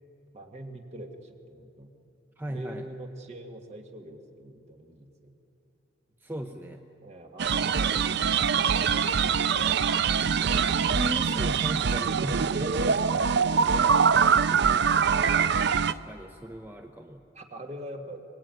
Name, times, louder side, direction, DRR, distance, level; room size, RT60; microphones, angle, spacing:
voice 1, 0.3-1.9 2.5-5.3 7.0-10.3 12.7-13.0 14.4-15.3 17.3-18.2, right 1 dB, 35° right, 3 dB, 1.9 m, -44 dB
voice 2, 2.4-2.9 6.2-6.8 10.5-14.1 15.8-17.2, equal, 10° right, 4 dB, 0.8 m, -38 dB
sound 1, 7.4-15.9, right 6 dB, 60° right, 0.5 m, -24 dB
23.5 x 20.5 x 9.2 m, 2.9 s
head